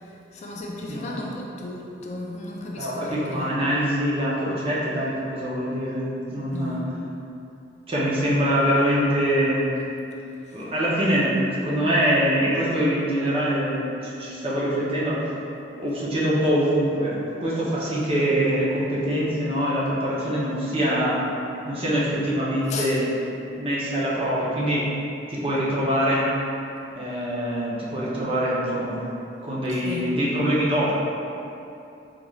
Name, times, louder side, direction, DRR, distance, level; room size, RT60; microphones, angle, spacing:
voice 1, 0.0-3.5 6.5-6.9 10.5-10.7 22.7-22.9 29.8-30.1, left 2 dB, 40° left, -2 dB, 0.3 m, -35 dB
voice 2, 0.8-1.3 2.7-6.8 7.9-9.8 10.5-15.2 15.7-21.2 21.7-23.0 23.5-24.8 25.3-26.3 26.9-29.0 29.4-30.9, equal, 30° right, -7 dB, 0.6 m, -24 dB
3.7 x 3.1 x 2.3 m, 2.7 s
head